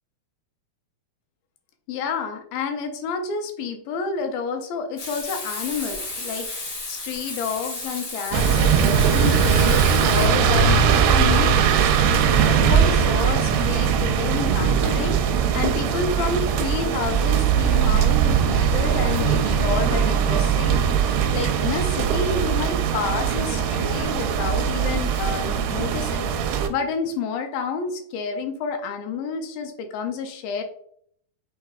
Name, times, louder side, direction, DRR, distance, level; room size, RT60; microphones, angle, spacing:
voice 1, 1.9-30.6, left 5 dB, 80° left, 5 dB, 2.1 m, -30 dB
Frying (food), 5.0-10.3, left 2 dB, 45° left, 1.7 m, -33 dB
sound 1, 8.3-26.7, right 7 dB, 80° right, 2.5 m, -20 dB
6.4 x 3.5 x 2.3 m, 0.65 s
omnidirectional pair, 4.6 m